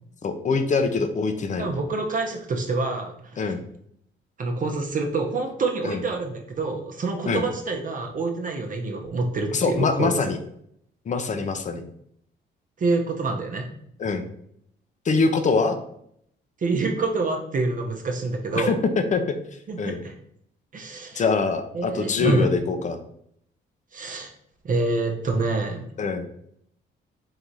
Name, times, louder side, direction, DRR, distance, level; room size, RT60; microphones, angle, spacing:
voice 1, 0.2-1.8 3.4-3.6 5.8-6.0 7.2-7.5 9.5-10.4 11.1-11.8 14.0-14.3 15.0-15.8 18.5-19.2 19.8-20.0 21.1-23.0 26.0-26.3, left 4 dB, 40° left, 8 dB, 0.6 m, -24 dB
voice 2, 1.6-3.5 4.4-10.1 12.8-13.7 16.6-18.8 19.7-20.1 20.7-21.2 21.7-22.5 23.9-24.3 24.6-25.9, right 3 dB, 40° right, 2 dB, 0.8 m, -26 dB
3.9 x 2.7 x 4.6 m, 0.70 s
cardioid pair, 90°, 20 cm